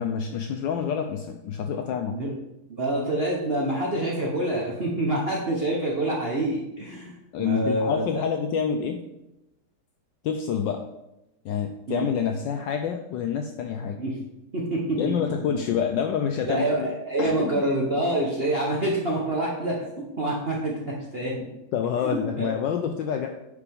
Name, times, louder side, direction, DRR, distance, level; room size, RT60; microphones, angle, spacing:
voice 1, 0.0-2.2 7.3-9.0 10.2-10.9 11.4-14.0 15.0-16.9 17.2-17.6 21.7-23.3, left 7 dB, 80° left, 5 dB, 1.0 m, -27 dB
voice 2, 2.7-8.2 11.9-12.1 14.0-14.2 14.5-15.0 15.5-15.6 16.4-21.5 22.0-22.5, right 1 dB, 50° right, -3 dB, 0.7 m, -27 dB
9.4 x 5.1 x 3.5 m, 0.91 s
omnidirectional pair, 2.4 m